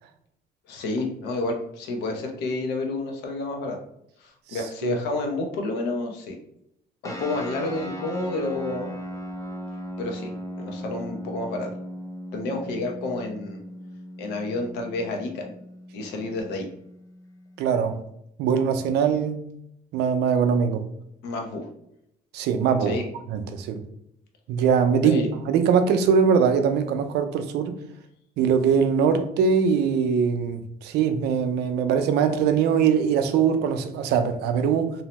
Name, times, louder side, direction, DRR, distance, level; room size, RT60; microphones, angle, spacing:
voice 1, 0.7-3.8 4.2-6.3 7.0-8.9 10.0-10.3 10.6-11.7 12.3-13.6 14.2-15.5 15.9-16.7 21.2-21.7 22.8-23.0 25.0-25.3, left 2 dB, 85° left, 0.6 m, -29 dB
voice 2, 4.5-5.0 17.6-18.0 18.4-19.5 19.9-20.8 22.3-23.0 23.3-23.8 24.5-27.7 28.4-34.9, right 6 dB, 80° right, 0.4 m, -22 dB
sound 1, 7.0-17.9, equal, 20° left, 0.5 m, -38 dB
2.6 x 2.1 x 2.9 m
cardioid pair, 110°, 17 cm